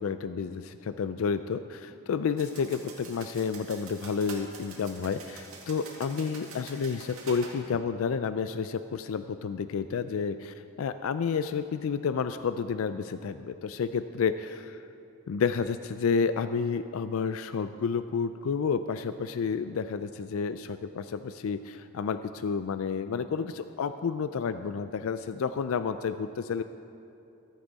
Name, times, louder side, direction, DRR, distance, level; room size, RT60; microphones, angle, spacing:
voice 1, 0.0-14.8 15.3-26.6, left 5 dB, 80° left, 11 dB, 0.4 m, -30 dB
sound 1, 2.4-7.6, right 4 dB, 85° right, 2.1 m, -46 dB
15.0 x 11.5 x 4.1 m, 2.7 s
head